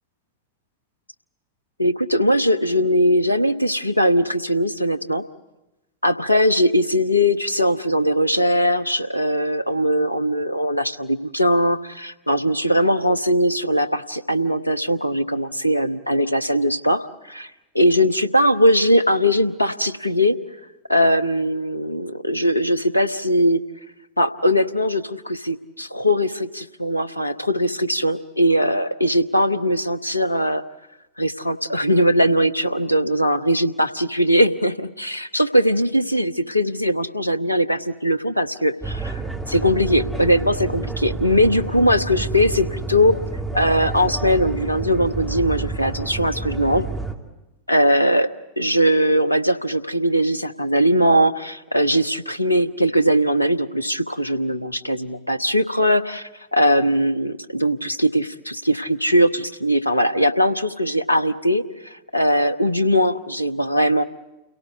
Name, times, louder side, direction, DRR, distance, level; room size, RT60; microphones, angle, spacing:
voice 1, 1.8-5.2 6.0-17.5 17.7-20.3 20.9-23.6 24.2-30.6 31.2-39.2 39.5-43.1 43.5-46.9 47.7-48.3 48.6-64.0, equal, 85° left, 11 dB, 0.9 m, -20 dB
sound 1, 38.8-47.1, right 3 dB, ahead, 2.6 m, -29 dB
29.5 x 18.0 x 8.2 m, 1.0 s
figure-of-eight pair, 90°, 0 cm